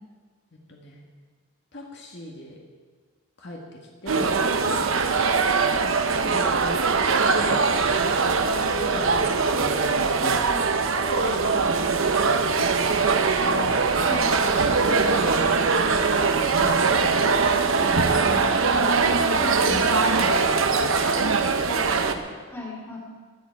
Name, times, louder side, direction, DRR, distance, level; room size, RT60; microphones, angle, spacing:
voice 1, 0.7-1.0 1.7-2.6 3.4-3.6 4.0-4.4 5.4-7.1 7.3-7.7 8.4-9.3 9.7-10.1 10.8-11.7 11.9-12.2 13.4-13.8 14.1-14.5 14.8-15.7 16.0-19.1 19.7-19.8 20.2-22.2, left 1 dB, 50° left, -1 dB, 1.8 m, -37 dB
sound 1, 4.1-22.1, right 4 dB, 65° right, 0.9 m, -22 dB
voice 2, 4.6-5.0 10.2-10.6 14.0-14.3 19.4-19.8 22.5-23.0, left 3 dB, 10° left, -4 dB, 2.7 m, -37 dB
17.0 x 11.5 x 4.7 m, 1.5 s
head